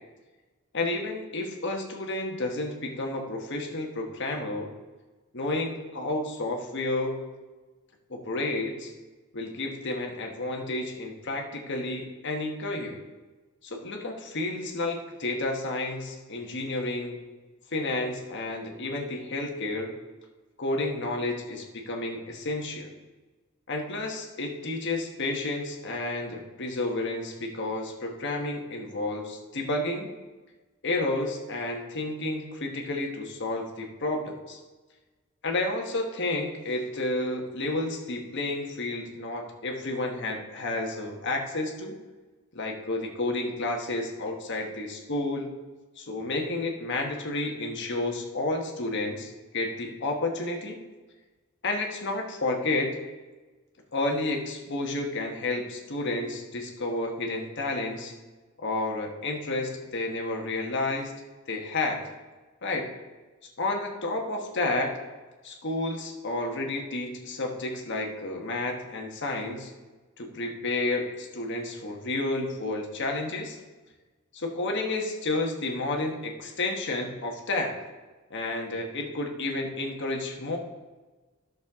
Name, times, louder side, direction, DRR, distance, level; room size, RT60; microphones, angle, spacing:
voice 1, 0.7-4.7 5.3-7.2 8.1-8.9 9.3-13.0 13.6-17.2 17.7-19.9 20.6-22.9 23.7-30.1 30.8-34.6 35.4-42.0 42.5-45.5 46.0-50.8 51.6-53.0 53.9-58.1 58.6-61.1 61.5-62.0 62.6-62.9 63.6-64.9 65.4-69.7 70.2-73.6 74.3-77.8 78.3-80.6, left 2 dB, 55° left, 2 dB, 1.3 m, -31 dB
11.5 x 6.6 x 3.6 m, 1.3 s
head